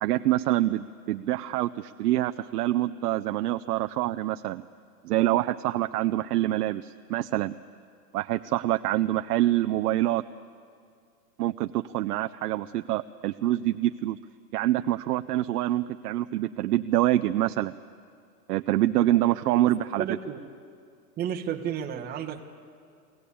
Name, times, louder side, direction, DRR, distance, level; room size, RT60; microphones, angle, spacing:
voice 1, 0.0-4.6 5.0-7.5 8.1-10.2 11.4-14.2 14.5-17.7 18.5-20.0, right 14 dB, 65° right, 8 dB, 0.7 m, -26 dB
voice 2, 20.0-20.4 21.2-22.4, right 9 dB, 20° right, 2 dB, 1.1 m, -31 dB
24.0 x 17.5 x 8.5 m, 2.3 s
hypercardioid pair, 140°, 50 cm